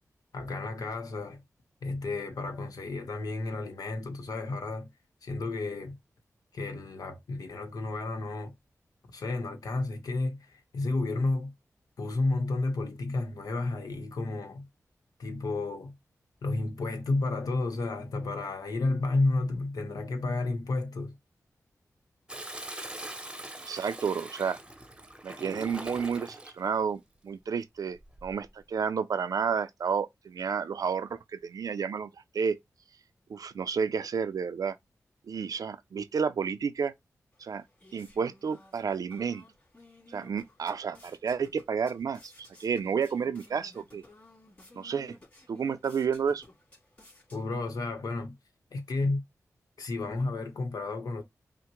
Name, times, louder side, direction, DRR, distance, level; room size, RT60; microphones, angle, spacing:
voice 1, 0.3-1.4 1.8-4.9 5.2-6.0 6.5-8.5 9.1-11.5 12.0-14.7 15.2-15.9 16.4-21.1 47.3-48.3 48.7-49.2 49.8-51.2, left 2 dB, 85° left, 1.0 m, -31 dB
Toilet flush, 22.3-26.6 28.0-28.5, right 1 dB, 15° right, 0.8 m, -42 dB
voice 2, 23.6-24.6 25.2-32.6 33.3-34.8 35.3-36.9 37.4-37.6 37.9-39.4 40.1-44.0 44.7-45.2 45.5-46.4, right 6 dB, 75° right, 0.5 m, -31 dB
sound 1, 37.3-47.9, left 2 dB, 30° left, 2.9 m, -56 dB
5.7 x 2.1 x 3.0 m
cardioid pair, 70°, 6 cm